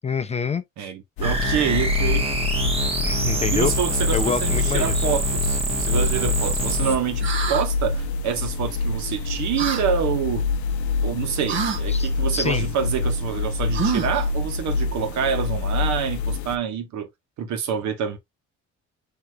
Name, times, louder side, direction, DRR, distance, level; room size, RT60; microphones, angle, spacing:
voice 1, 0.0-0.6 3.0-3.7 4.1-5.1 11.9-12.7, left 5 dB, 25° left, 0.4 m, -26 dB
voice 2, 0.8-2.3 3.5-10.5 11.0-17.1 17.4-18.2, right 8 dB, 70° right, 1.2 m, -27 dB
sound 1, 1.2-16.6, left 4 dB, 75° left, 0.5 m, -26 dB
sound 2, 1.2-7.0, right 2 dB, 20° right, 1.1 m, -26 dB
sound 3, 7.2-7.7 9.6-9.8 11.5-11.8 13.7-14.2, right 6 dB, 40° right, 0.9 m, -26 dB
6.2 x 2.9 x 2.2 m
cardioid pair, 105°, 29 cm